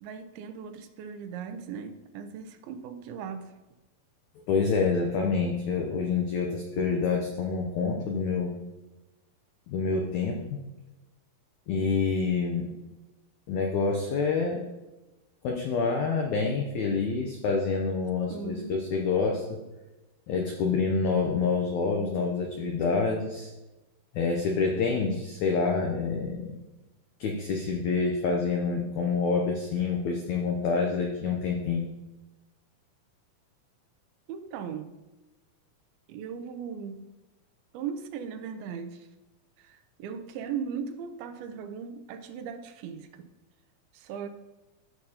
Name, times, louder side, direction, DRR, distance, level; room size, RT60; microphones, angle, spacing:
voice 1, 0.0-3.5 18.3-18.8 34.3-35.0 36.1-37.1 37.7-39.1 39.6-43.3 43.9-44.3, right 7 dB, 80° right, 8 dB, 2.5 m, -38 dB
voice 2, 4.5-8.5 9.7-10.6 11.7-12.7 13.5-14.6 15.4-19.6 20.3-23.5 24.1-26.6 27.2-31.9, left 4 dB, 85° left, 1 dB, 1.6 m, -27 dB
13.0 x 6.8 x 2.9 m, 1.0 s
omnidirectional pair, 4.4 m